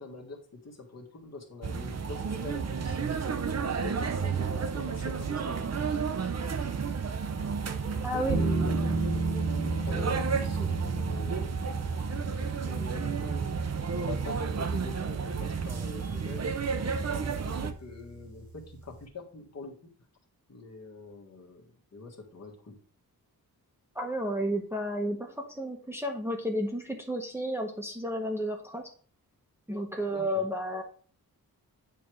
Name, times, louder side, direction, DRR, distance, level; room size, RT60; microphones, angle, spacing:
voice 1, 0.0-3.0 3.6-6.0 7.9-11.6 12.6-16.5 17.2-19.9 20.5-22.8 30.1-30.5, left 4 dB, 45° left, 0 dB, 1.7 m, -44 dB
sound 1, 1.6-17.7, right 6 dB, 45° right, 0.7 m, -32 dB
voice 2, 8.0-8.4 12.0-12.1 23.9-28.9 29.7-30.8, equal, 5° right, 1 dB, 0.9 m, -32 dB
sound 2, 8.3-19.0, right 3 dB, 70° right, 1.6 m, -34 dB
9.3 x 3.4 x 6.2 m, 0.43 s
wide cardioid pair, 175°, 37 cm